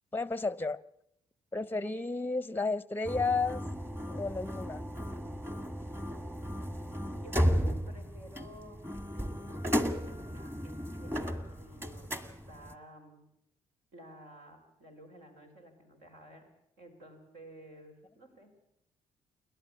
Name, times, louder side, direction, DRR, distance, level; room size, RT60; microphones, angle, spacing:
voice 1, 0.1-0.8 1.5-3.7 4.1-4.8, left 3 dB, 10° left, 0.7 m, -32 dB
sound 1, 3.0-12.7, equal, 15° right, 2.1 m, -34 dB
voice 2, 7.2-8.8 9.1-12.2 12.4-13.2 13.9-16.4 16.8-18.6, right 1 dB, 75° right, 4.8 m, -53 dB
28.0 x 11.5 x 8.5 m
hypercardioid pair, 50°, 15 cm